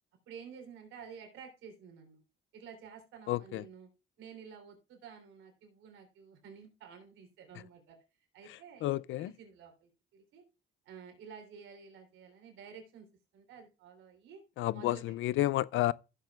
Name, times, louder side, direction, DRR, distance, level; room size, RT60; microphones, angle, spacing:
voice 1, 0.3-2.2 2.5-3.9 4.2-8.0 8.3-8.9 9.2-10.4 10.8-13.1 13.3-14.4 14.7-15.4, right 6 dB, 85° right, 3.2 m, -51 dB
voice 2, 3.3-3.6 8.8-9.3 14.6-15.9, left 15 dB, 80° left, 0.4 m, -30 dB
15.5 x 7.5 x 2.3 m
cardioid pair, 90°, 20 cm